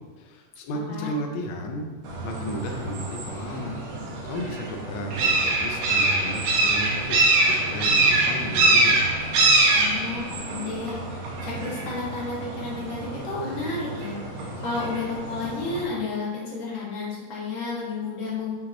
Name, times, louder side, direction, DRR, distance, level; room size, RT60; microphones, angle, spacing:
voice 1, 0.2-1.9 2.2-3.8 4.2-9.1, left 1 dB, 75° left, 2 dB, 1.8 m, -33 dB
sound 1, 2.0-15.8, right 2 dB, 75° right, 2.5 m, -24 dB
voice 2, 9.8-14.2 14.6-18.5, left 4 dB, 45° left, -6 dB, 2.0 m, -32 dB
5.9 x 5.9 x 3.2 m, 1.4 s
omnidirectional pair, 3.7 m